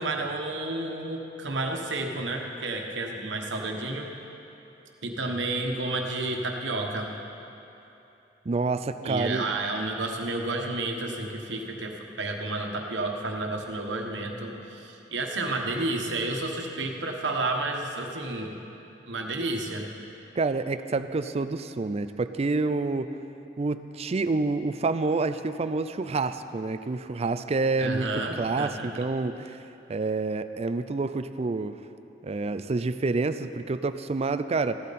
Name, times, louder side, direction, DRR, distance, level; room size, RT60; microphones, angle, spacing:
voice 1, 0.0-4.1 5.0-7.1 9.0-18.6 19.1-19.9 27.8-28.9, right 2 dB, 85° right, 2 dB, 1.3 m, -31 dB
voice 2, 8.5-9.5 20.4-23.1 23.6-28.1 28.4-29.6 29.9-31.8 32.2-34.8, right 3 dB, 35° right, 11 dB, 0.4 m, -28 dB
15.5 x 12.0 x 4.2 m, 2.9 s
head